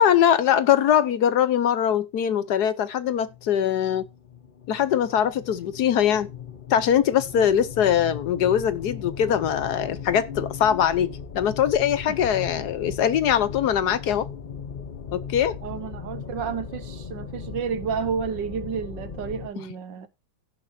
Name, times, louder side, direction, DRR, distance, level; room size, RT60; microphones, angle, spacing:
voice 1, 0.0-4.1 4.7-6.3 6.7-14.3 15.1-15.6, left 9 dB, 65° left, 1.2 m, -22 dB
sound 1, 2.8-19.5, left 7 dB, 40° left, 0.7 m, -38 dB
voice 2, 15.6-20.1, right 6 dB, 75° right, 1.8 m, -31 dB
17.0 x 6.6 x 2.7 m
omnidirectional pair, 2.0 m